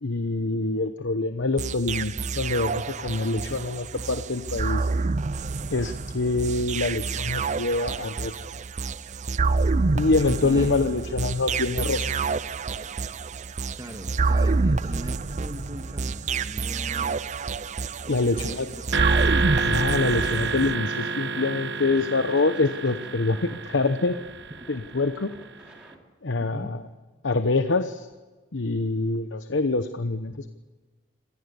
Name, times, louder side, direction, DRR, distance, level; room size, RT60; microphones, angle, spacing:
voice 1, 0.0-4.9 5.7-8.4 9.9-12.1 18.1-18.7 19.6-24.2 24.7-25.3 26.2-26.8 27.2-28.1 28.5-30.5, left 3 dB, 80° left, 10 dB, 1.0 m, -25 dB
sound 1, 1.6-20.8, right 4 dB, 40° right, 0.6 m, -28 dB
voice 2, 10.4-11.0 13.7-17.2 18.1-19.1 26.4-26.8, equal, 20° right, 6 dB, 1.7 m, -40 dB
Scratching (performance technique), 18.2-18.6 18.9-21.5 21.8-26.0, equal, 5° right, 3.9 m, -51 dB
sound 2, 18.9-25.3, right 4 dB, 65° right, 1.2 m, -29 dB
25.5 x 18.0 x 7.0 m, 1.3 s
head